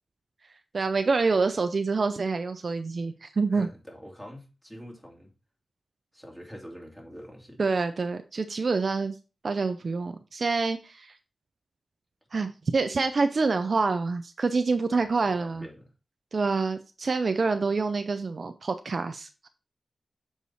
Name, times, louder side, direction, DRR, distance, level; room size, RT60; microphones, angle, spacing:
voice 1, 0.7-3.7 7.6-9.2 9.4-11.1 12.3-15.7 16.3-19.5, right 4 dB, 55° right, 8 dB, 0.5 m, -27 dB
voice 2, 3.5-5.3 6.1-7.6 14.9-15.9, equal, 5° left, -1 dB, 2.4 m, -45 dB
6.8 x 4.7 x 4.1 m, 0.31 s
wide cardioid pair, 105°, 0 cm